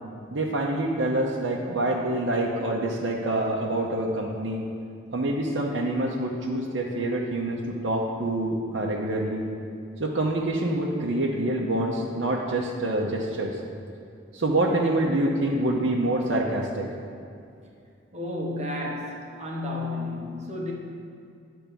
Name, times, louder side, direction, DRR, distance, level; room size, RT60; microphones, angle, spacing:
voice 1, 0.3-4.7 5.1-9.5 10.0-13.6 14.3-16.9, right 1 dB, 65° right, -2 dB, 0.8 m, -26 dB
voice 2, 18.1-20.7, left 2 dB, 35° right, -2 dB, 1.2 m, -32 dB
10.0 x 3.4 x 6.9 m, 2.5 s
head